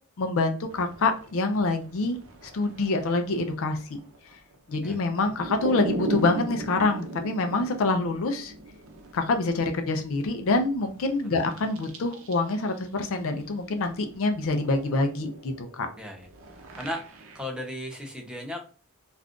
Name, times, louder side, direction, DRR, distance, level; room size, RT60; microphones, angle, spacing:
voice 1, 0.2-2.2 2.4-4.0 4.7-8.5 9.1-15.9, left 3 dB, 65° left, 6 dB, 0.5 m, -26 dB
sound 1, 0.7-12.8 13.1-17.4, right 1 dB, 65° right, 0.6 m, -39 dB
voice 2, 16.0-18.7, left 1 dB, 5° right, 2 dB, 0.5 m, -37 dB
2.5 x 2.4 x 3.5 m, 0.37 s
head